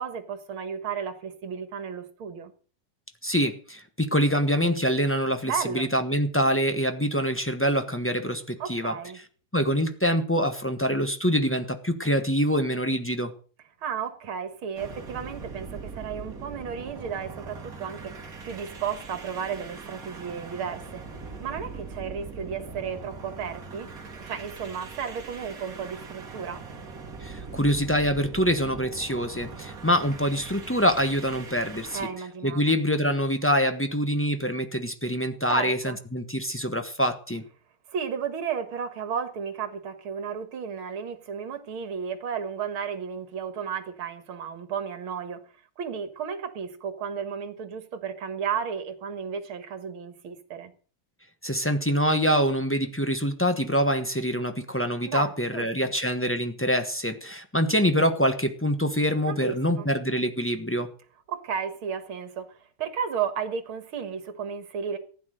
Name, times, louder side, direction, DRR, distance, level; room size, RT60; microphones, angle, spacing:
voice 1, 0.0-2.5 5.4-5.9 8.6-9.2 13.8-21.0 21.4-26.6 31.9-32.7 35.5-36.0 37.9-45.4 45.8-50.7 55.1-55.9 59.3-59.9 61.3-65.0, right 7 dB, 70° right, 2.4 m, -33 dB
voice 2, 3.2-9.2 9.5-13.3 27.2-32.0 32.4-37.4 51.4-60.9, equal, 10° left, 0.6 m, -25 dB
sound 1, 14.7-32.1, right 4 dB, 40° right, 2.3 m, -41 dB
15.0 x 9.7 x 6.5 m
omnidirectional pair, 2.4 m